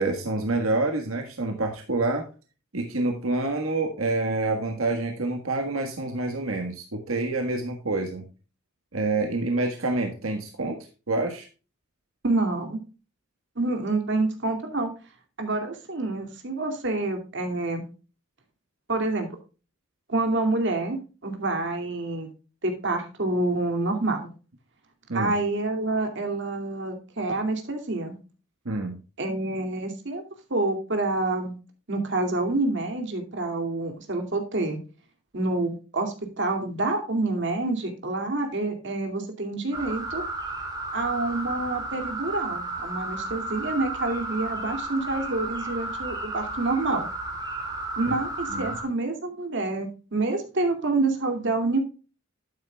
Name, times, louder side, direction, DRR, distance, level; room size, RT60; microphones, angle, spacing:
voice 1, 0.0-2.3 2.7-8.2 8.9-10.8 11.1-11.5 25.1-25.3 28.6-28.9 48.1-48.2 48.5-48.8, right 2 dB, 85° right, 3 dB, 1.5 m, -27 dB
voice 2, 12.2-12.8 13.6-14.9 15.4-17.8 18.9-19.3 20.1-21.0 21.2-22.3 22.6-24.3 25.1-28.2 29.2-30.2 30.5-31.5 31.9-34.8 35.3-40.2 40.9-47.1 48.0-51.8, right 2 dB, 60° right, 5 dB, 2.5 m, -27 dB
sound 1, 39.7-48.8, right 2 dB, 20° right, 3.2 m, -33 dB
12.0 x 8.9 x 2.3 m, 0.33 s
head